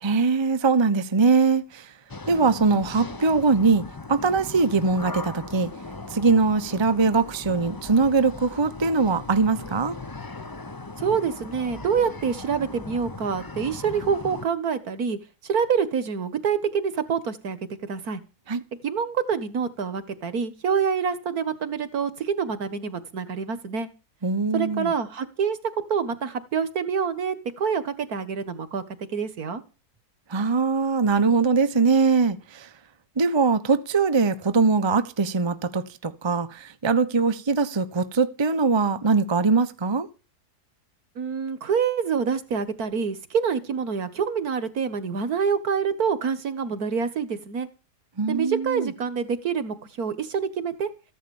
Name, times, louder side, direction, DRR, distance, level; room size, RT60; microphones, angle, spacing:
voice 1, 0.0-1.9 2.3-5.7 6.1-10.0 18.5-18.6 24.2-24.9 30.3-32.7 33.2-40.1 48.2-48.9, right 4 dB, 20° right, 0.8 m, -22 dB
sound 1, 2.1-14.5, left 3 dB, 20° left, 0.7 m, -38 dB
voice 2, 11.0-15.2 15.4-18.2 18.8-23.9 24.5-25.6 25.9-28.8 29.1-29.6 41.2-47.7 48.3-50.9, right 6 dB, 65° right, 2.0 m, -26 dB
15.0 x 11.0 x 7.2 m
omnidirectional pair, 1.7 m